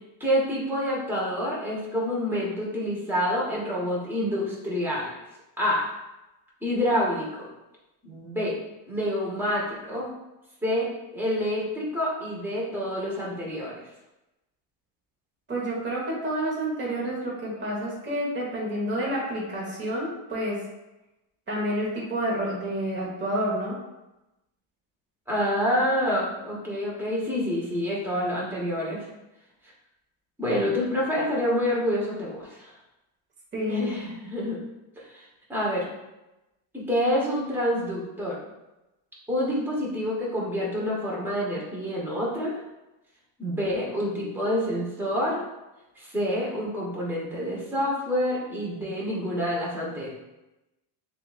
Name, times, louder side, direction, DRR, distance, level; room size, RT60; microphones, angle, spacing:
voice 1, 0.2-5.1 5.6-5.9 6.6-7.5 8.0-8.6 8.9-10.1 10.6-13.7 25.3-29.0 30.4-32.7 33.6-34.6 35.0-35.2 35.5-35.9 36.7-38.4 39.3-42.6 43.4-45.4 46.0-50.1, equal, 5° right, -5 dB, 1.0 m, -27 dB
voice 2, 15.5-20.6 21.5-23.8 33.5-33.9, equal, 20° right, -5 dB, 1.2 m, -29 dB
6.6 x 2.6 x 2.4 m, 0.98 s
cardioid pair, 145°, 50 cm